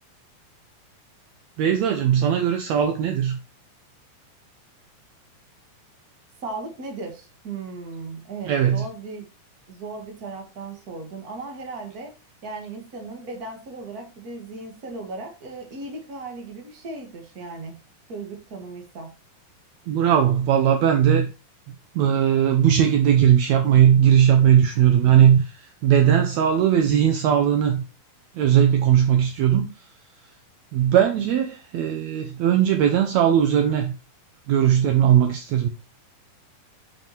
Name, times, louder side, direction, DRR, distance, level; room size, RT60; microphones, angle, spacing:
voice 1, 1.6-3.4 8.5-8.8 19.9-21.3 21.9-27.8 28.4-29.7 30.7-33.9 34.5-35.7, right 9 dB, 80° right, 1.6 m, -18 dB
voice 2, 6.4-9.2 9.7-12.1 12.4-17.8 18.1-19.1, right 3 dB, 35° right, 1.6 m, -36 dB
7.5 x 5.6 x 4.5 m
omnidirectional pair, 4.1 m